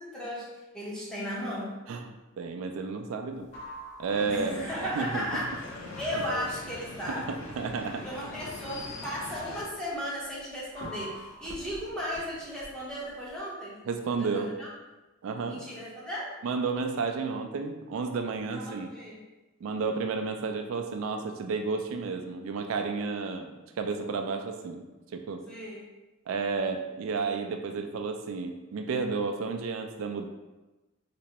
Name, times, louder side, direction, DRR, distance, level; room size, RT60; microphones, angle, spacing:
voice 1, 0.0-1.8 4.3-5.7 6.0-7.4 7.9-13.8 14.1-14.7 15.4-16.4 18.5-19.2 25.5-25.8, equal, 5° left, -7 dB, 0.8 m, -36 dB
voice 2, 2.4-3.5 4.0-4.7 5.0-5.3 6.1-6.2 7.1-8.0 13.9-14.5 15.2-15.6 16.4-18.9 19.6-24.8 25.1-25.4 26.3-30.3, right 4 dB, 75° right, 5 dB, 0.3 m, -32 dB
sound 1, 3.3-13.4, equal, 35° left, 1.3 m, -47 dB
sound 2, 4.1-9.6, left 2 dB, 75° left, 0.5 m, -42 dB
3.3 x 3.0 x 2.8 m, 1.1 s
head